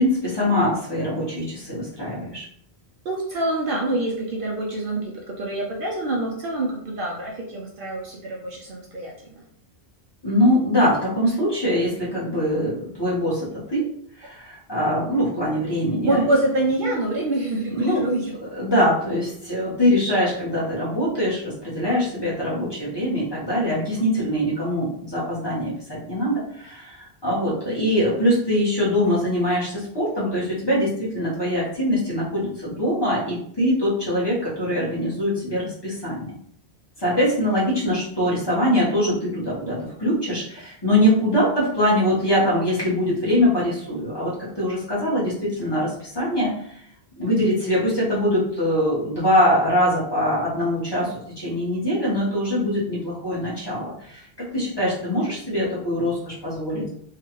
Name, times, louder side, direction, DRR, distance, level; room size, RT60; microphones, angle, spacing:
voice 1, 0.0-2.5 10.2-13.9 14.2-16.2 17.7-18.0 18.6-36.3 37.0-46.8 47.1-54.2 54.5-56.9, equal, 25° left, -8 dB, 1.1 m, -23 dB
voice 2, 3.0-9.4 16.1-18.3, right 2 dB, 60° right, -2 dB, 0.7 m, -25 dB
2.8 x 2.4 x 2.9 m, 0.66 s
omnidirectional pair, 1.1 m